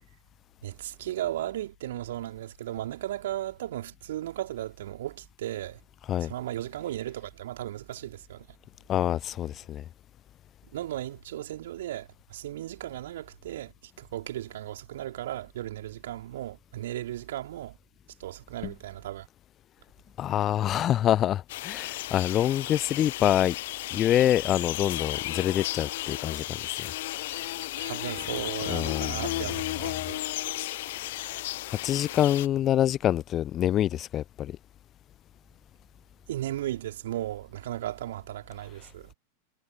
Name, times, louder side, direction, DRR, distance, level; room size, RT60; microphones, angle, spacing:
voice 1, 0.6-5.8 6.2-8.5 10.7-13.7 14.0-17.8 18.2-19.3 27.8-30.2 36.3-39.1, right 13 dB, 60° right, 3.7 m, -36 dB
voice 2, 8.9-9.8 18.6-18.7 20.2-23.6 23.9-26.9 28.7-29.2 31.7-34.6, left 11 dB, 30° left, 0.5 m, -26 dB
sound 1, 21.5-32.5, left 16 dB, 55° left, 1.1 m, -34 dB
figure-of-eight pair, 90°, 0 cm